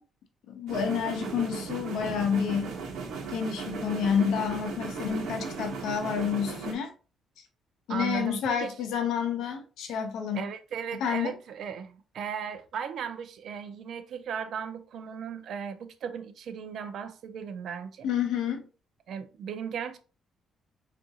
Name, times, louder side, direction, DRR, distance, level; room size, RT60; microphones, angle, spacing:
voice 1, 0.5-2.7 3.3-6.9 7.9-10.5 11.0-11.4 18.0-18.7, left 7 dB, 75° left, 0.6 m, -29 dB
sound 1, 0.7-6.7, right 5 dB, 85° right, 0.9 m, -37 dB
Bass guitar, 2.0-6.0, left 2 dB, 5° right, 0.6 m, -51 dB
voice 2, 7.9-8.7 10.3-18.1 19.1-20.0, right 7 dB, 55° right, 0.4 m, -36 dB
3.5 x 2.5 x 2.7 m
cardioid pair, 165°, 0 cm